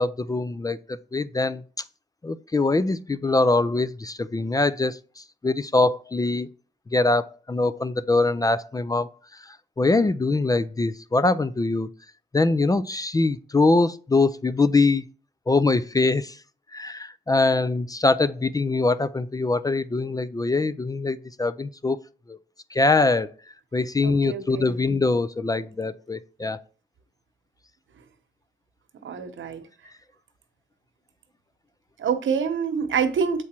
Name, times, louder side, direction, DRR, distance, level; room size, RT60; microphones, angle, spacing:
voice 1, 0.0-1.6 2.2-6.5 6.9-9.1 9.4-11.9 12.3-15.0 15.5-16.4 16.7-22.0 22.3-22.4 22.7-23.3 23.7-26.6, left 3 dB, 20° left, 0.3 m, -23 dB
voice 2, 24.0-24.8 29.0-29.6 32.0-33.4, right 6 dB, 85° right, 1.0 m, -26 dB
7.2 x 4.8 x 4.3 m
wide cardioid pair, 115°, 20 cm